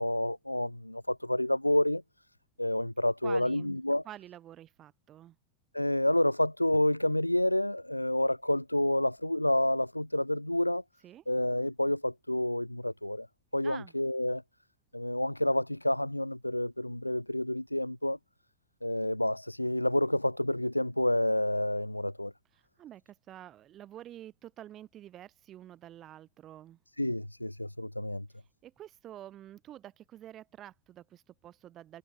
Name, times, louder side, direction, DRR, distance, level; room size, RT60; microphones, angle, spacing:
voice 1, 0.0-2.0 2.6-4.0 5.7-10.8 11.3-13.3 13.5-14.4 14.9-18.2 18.8-22.3 27.0-28.3, left 1 dB, 85° left, 0.3 m, -29 dB
voice 2, 3.2-5.4 11.0-11.2 13.6-13.9 22.5-26.8 28.6-32.0, right 12 dB, 30° right, 2.2 m, -48 dB
figure-of-eight pair, 90°, 0 cm